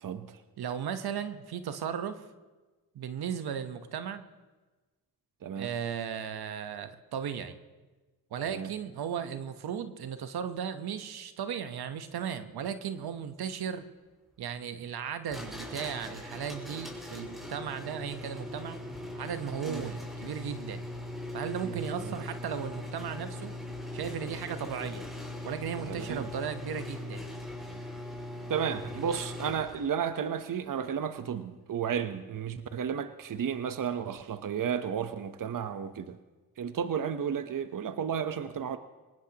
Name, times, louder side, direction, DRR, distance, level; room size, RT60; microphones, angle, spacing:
voice 1, 0.0-0.4 5.4-5.7 8.5-8.7 19.6-19.9 21.6-22.1 25.9-26.3 28.5-36.2 36.6-38.8, right 7 dB, 60° right, 10 dB, 1.0 m, -33 dB
voice 2, 0.6-2.2 2.9-4.2 5.6-7.5 8.3-13.8 14.4-18.8 19.1-20.8 21.3-23.5 23.9-25.1 25.4-27.3, right 8 dB, 85° right, 9 dB, 1.1 m, -36 dB
sound 1, 15.3-30.0, left 1 dB, ahead, 5.7 m, -40 dB
23.5 x 19.0 x 2.9 m, 1.2 s
cardioid pair, 70°, 37 cm